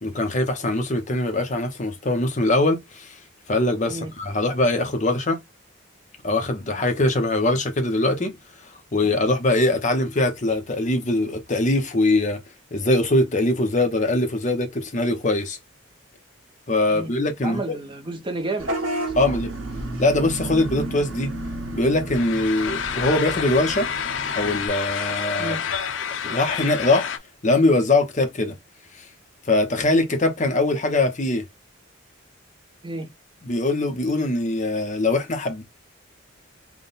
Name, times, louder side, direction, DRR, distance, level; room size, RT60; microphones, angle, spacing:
voice 1, 0.0-3.2 3.5-5.4 6.2-8.3 8.9-12.4 12.7-15.6 16.7-17.6 19.1-19.5 20.0-21.3 21.7-23.9 24.3-25.6 26.2-27.1 27.4-28.5 28.9-29.1 29.4-31.4 33.5-35.6, left 2 dB, 35° left, 0.8 m, -22 dB
voice 2, 17.4-18.7 19.2-19.4 25.4-25.6 32.8-33.1, right 2 dB, 25° right, 0.6 m, -31 dB
Vehicle horn car horn honking / Bus, 18.6-24.7, right 2 dB, 75° right, 1.2 m, -32 dB
sound 1, 22.1-27.2, left 8 dB, 65° left, 0.5 m, -28 dB
3.6 x 2.2 x 3.9 m
head